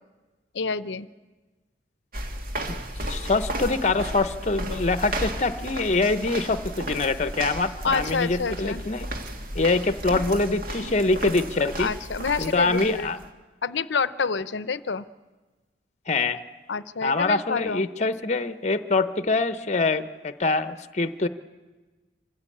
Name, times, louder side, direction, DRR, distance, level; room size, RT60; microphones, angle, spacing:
voice 1, 0.5-1.1 7.8-8.8 10.1-10.4 10.8-11.0 11.8-13.1 13.6-15.0 16.7-17.8, left 5 dB, 75° left, 16 dB, 0.7 m, -28 dB
sound 1, 2.1-13.3, right 1 dB, 50° right, 2.1 m, -34 dB
voice 2, 3.1-9.1 9.5-11.9 12.4-13.2 16.1-16.4 17.0-21.3, left 3 dB, 40° left, 11 dB, 0.8 m, -24 dB
26.0 x 15.5 x 8.5 m, 1.3 s
head